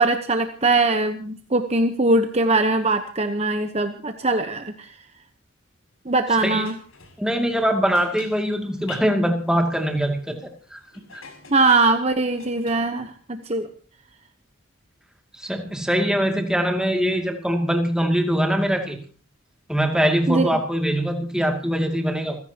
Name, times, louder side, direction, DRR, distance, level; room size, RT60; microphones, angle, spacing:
voice 1, 0.0-5.0 6.0-6.7 11.5-13.7 20.3-20.5, right 3 dB, 30° right, 7 dB, 1.0 m, -21 dB
sound 1, 6.1-9.1 9.5-12.7, left 5 dB, 75° left, 6.4 m, -45 dB
voice 2, 7.2-10.8 11.1-11.2 15.3-19.0 19.7-22.4, equal, 5° right, 3 dB, 2.4 m, -22 dB
28.0 x 16.0 x 2.9 m, 0.42 s
head